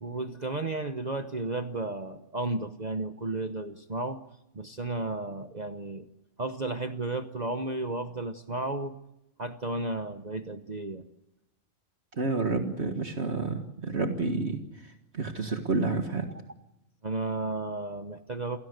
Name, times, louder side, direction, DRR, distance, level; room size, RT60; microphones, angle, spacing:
voice 1, 0.0-4.2 4.5-6.1 6.4-9.0 9.4-11.0 17.0-18.6, right 2 dB, 35° right, 7 dB, 1.0 m, -33 dB
voice 2, 12.2-14.6 15.1-16.3, right 3 dB, 50° right, 5 dB, 1.9 m, -29 dB
29.0 x 17.0 x 8.0 m, 0.90 s
omnidirectional pair, 1.4 m